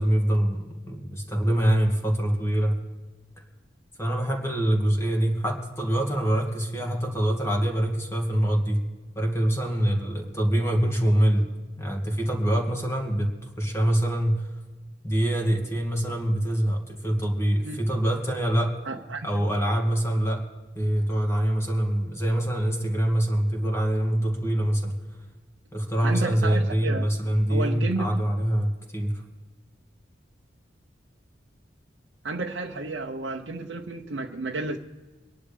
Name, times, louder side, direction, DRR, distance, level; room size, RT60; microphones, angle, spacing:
voice 1, 0.0-2.8 4.0-8.9 9.2-11.5 11.8-14.5 15.0-18.8 19.2-20.4 20.8-25.0 25.7-29.2, right 1 dB, 15° left, 1 dB, 2.2 m, -24 dB
voice 2, 18.8-19.3 26.0-27.1 27.5-28.2 32.2-34.8, right 2 dB, 70° right, 0 dB, 0.8 m, -31 dB
24.0 x 11.0 x 3.4 m, 1.3 s
head